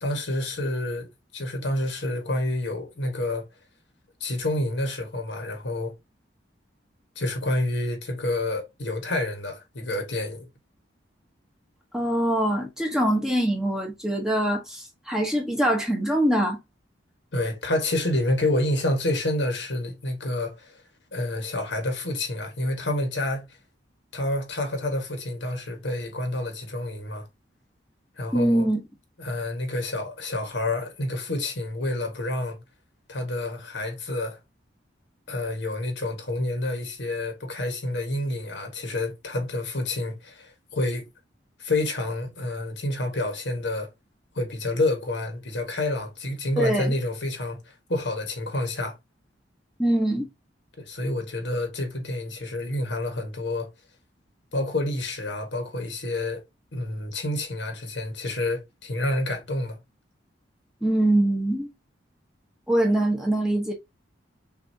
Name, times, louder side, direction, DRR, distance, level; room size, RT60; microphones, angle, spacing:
voice 1, 0.0-3.5 4.2-5.9 7.1-10.5 17.3-20.8 21.1-23.5 24.1-27.2 28.2-28.7 29.2-32.6 33.1-34.4 35.3-41.0 41.6-43.9 44.3-48.9 50.8-53.7 54.5-56.4 56.7-59.8, left 1 dB, 75° left, 1.5 m, -28 dB
voice 2, 11.9-16.6 28.3-28.8 46.6-46.9 49.8-50.3 60.8-61.7 62.7-63.7, right 1 dB, 5° right, 1.1 m, -23 dB
6.0 x 2.7 x 2.8 m
head